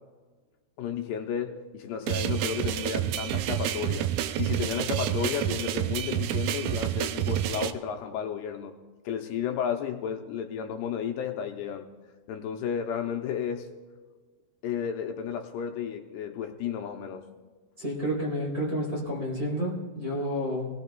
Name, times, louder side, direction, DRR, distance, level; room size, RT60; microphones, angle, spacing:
voice 1, 0.8-4.1 4.4-8.8 9.1-11.9 12.3-13.7 14.6-17.3, left 8 dB, 80° left, 4 dB, 2.7 m, -32 dB
sound 1, 2.1-7.7, right 12 dB, 85° right, 2.2 m, -29 dB
voice 2, 17.8-20.7, equal, 20° right, -3 dB, 3.6 m, -30 dB
24.5 x 18.0 x 2.3 m, 1.4 s
omnidirectional pair, 4.9 m